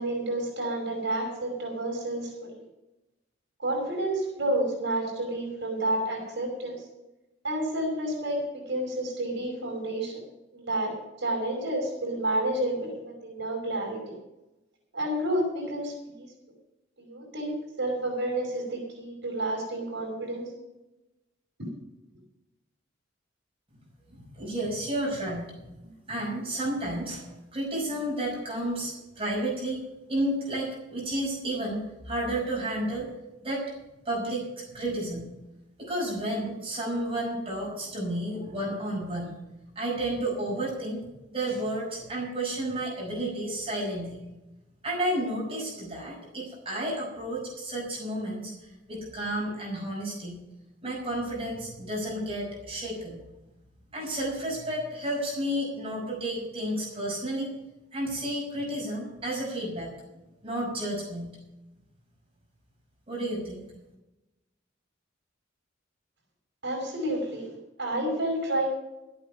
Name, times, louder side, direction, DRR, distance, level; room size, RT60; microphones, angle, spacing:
voice 1, 0.0-2.6 3.6-6.7 7.4-10.2 10.5-10.9 11.2-14.2 14.9-16.3 17.0-20.5 66.6-67.5 67.8-68.7, right 1 dB, 65° right, 0 dB, 5.2 m, -30 dB
voice 2, 24.2-25.5 25.8-29.8 30.1-33.1 33.4-33.6 34.1-35.3 35.8-39.3 39.8-41.1 41.3-44.2 44.8-50.4 50.8-53.2 53.9-57.5 57.9-59.9 60.4-61.4 63.1-63.6, right 1 dB, 30° right, -3 dB, 5.5 m, -31 dB
13.5 x 8.8 x 6.9 m, 0.97 s
head